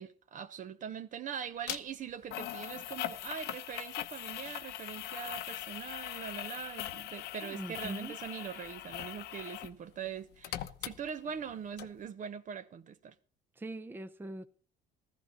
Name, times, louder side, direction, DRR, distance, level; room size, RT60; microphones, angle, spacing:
voice 1, 0.0-13.1, right 7 dB, 50° right, 1.0 m, -42 dB
sound 1, 1.7-1.8 2.3-9.8 10.0-11.5 11.8-11.9, left 13 dB, 80° left, 0.8 m, -41 dB
voice 2, 7.4-8.2 13.6-14.5, right 1 dB, 10° right, 0.7 m, -42 dB
14.5 x 14.5 x 4.0 m
cardioid pair, 110°, 17 cm